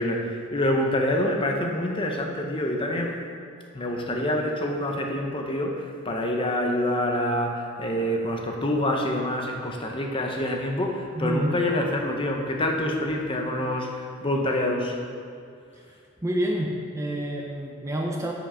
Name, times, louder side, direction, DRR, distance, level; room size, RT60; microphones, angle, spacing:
voice 1, 0.0-3.2 3.7-15.0, left 1 dB, 25° left, 1 dB, 0.8 m, -26 dB
voice 2, 11.2-11.5 16.2-18.3, right 1 dB, 15° right, 0 dB, 0.5 m, -28 dB
7.3 x 6.0 x 5.5 m, 2.4 s
head